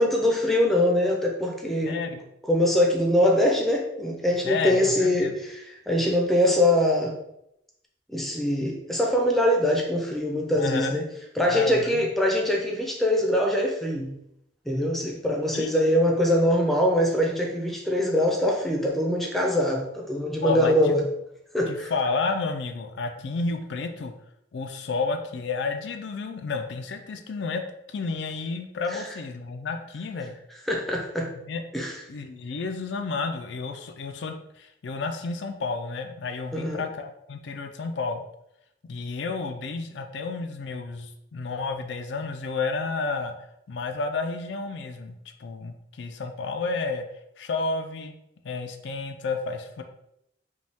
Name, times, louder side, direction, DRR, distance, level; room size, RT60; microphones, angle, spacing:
voice 1, 0.0-2.0 2.5-7.2 8.1-11.1 11.4-14.1 14.7-21.0 21.5-21.9 28.9-29.0 30.7-31.3 31.7-32.0 36.5-36.8, left 1 dB, ahead, 0 dB, 0.6 m, -23 dB
voice 2, 1.9-2.2 4.4-5.4 10.6-11.0 11.5-12.1 15.5-15.7 20.4-20.7 21.7-24.1 24.5-27.6 27.9-30.4 31.5-31.6 32.1-38.2 38.9-43.3 43.7-47.0 47.4-48.1 48.4-49.8, left 4 dB, 65° left, 6 dB, 0.4 m, -31 dB
5.2 x 2.3 x 3.4 m, 0.80 s
head